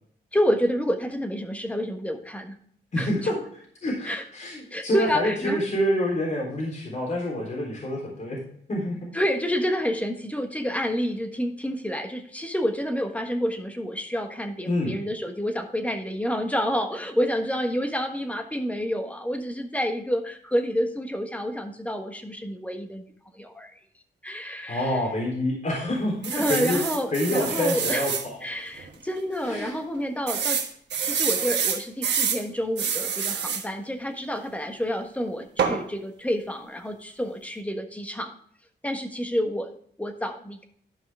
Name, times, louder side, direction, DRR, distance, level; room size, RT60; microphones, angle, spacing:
voice 1, 0.3-2.6 3.0-3.1 4.0-4.2 4.7-5.6 9.1-23.0 23.3-23.7 24.2-25.0 26.3-28.1 28.4-30.6 31.0-38.3 38.8-40.7, equal, 10° left, 5 dB, 1.4 m, -28 dB
voice 2, 2.9-3.3 3.8-8.4 8.7-9.1 14.7-15.0 24.7-26.8 27.1-28.4 29.4-29.7, left 1 dB, 45° left, -3 dB, 3.6 m, -27 dB
sound 1, 26.2-28.3 28.8-28.9 29.2-29.3 30.3-32.4 32.8-33.7 35.6-35.8, right 7 dB, 80° right, 1.3 m, -27 dB
12.5 x 5.7 x 3.5 m, 0.63 s
cardioid pair, 105°, 18 cm